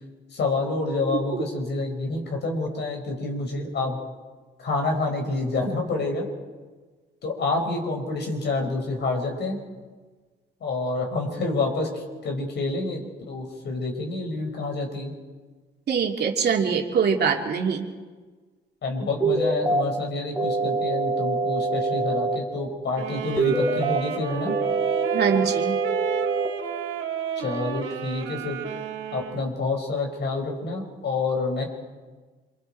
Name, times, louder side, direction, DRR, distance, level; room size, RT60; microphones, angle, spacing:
voice 1, 0.3-4.0 4.6-6.2 7.2-9.6 10.6-15.1 18.8-24.5 27.4-28.6 29.1-31.7, left 3 dB, 60° left, 2 dB, 5.6 m, -28 dB
voice 2, 15.9-17.8 25.1-25.8, right 6 dB, 55° right, 1 dB, 2.7 m, -23 dB
sound 1, 19.2-19.8 20.4-22.4 23.4-24.0 24.5-26.5, right 3 dB, 10° right, 3.8 m, -24 dB
sound 2, 22.9-29.5, right 9 dB, 80° right, 2.3 m, -33 dB
27.5 x 24.5 x 4.6 m, 1.4 s
cardioid pair, 90°, 20 cm